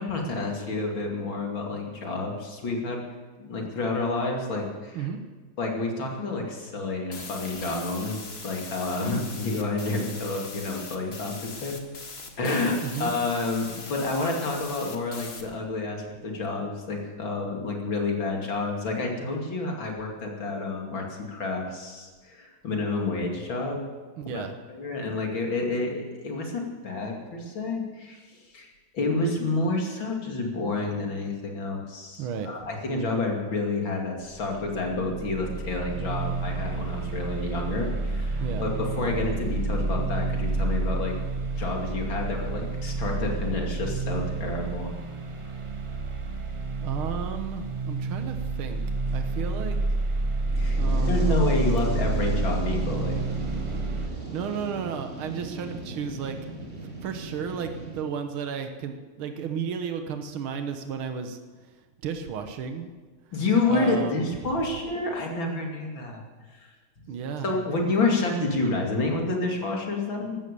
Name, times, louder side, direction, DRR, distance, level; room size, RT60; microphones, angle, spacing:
voice 1, 0.0-3.0 3.4-5.1 5.6-11.8 12.4-23.9 24.3-24.4 24.7-28.7 28.9-41.1 41.6-44.9 50.6-50.8 51.1-53.2 63.3-66.2 66.5-66.7 67.4-70.4, left 2 dB, 65° left, 0 dB, 3.4 m, -29 dB
sound 1, 7.1-15.4, left 4 dB, 30° left, 1.5 m, -41 dB
voice 2, 12.8-13.1 24.2-24.6 32.2-32.7 38.4-38.7 46.8-48.8 49.1-49.8 50.6-51.4 54.1-56.4 57.0-61.4 62.0-62.9 63.7-64.3 67.1-67.6, right 7 dB, 75° right, 6 dB, 2.0 m, -33 dB
sound 2, 34.3-54.1, right 3 dB, 50° right, 0.3 m, -29 dB
Fire, 50.4-58.0, right 2 dB, 30° right, 2.8 m, -37 dB
15.0 x 13.0 x 6.9 m, 1.3 s
omnidirectional pair, 2.3 m